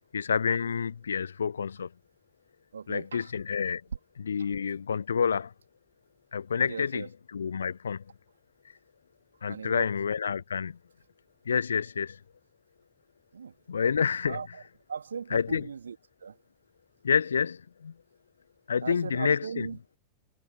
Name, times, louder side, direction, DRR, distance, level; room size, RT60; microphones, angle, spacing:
voice 1, 0.1-1.9 2.9-3.8 4.2-5.5 6.3-8.0 9.4-10.8 11.5-12.2 13.7-14.4 15.3-15.7 17.0-17.9 18.7-19.7, left 6 dB, 70° left, 1.0 m, -28 dB
voice 2, 2.7-3.3 4.4-4.5 6.7-7.1 9.5-9.9 13.3-13.5 14.3-14.6 14.9-16.4 18.8-20.0, right 6 dB, 70° right, 2.7 m, -38 dB
figure-of-eight pair, 90°, 0 cm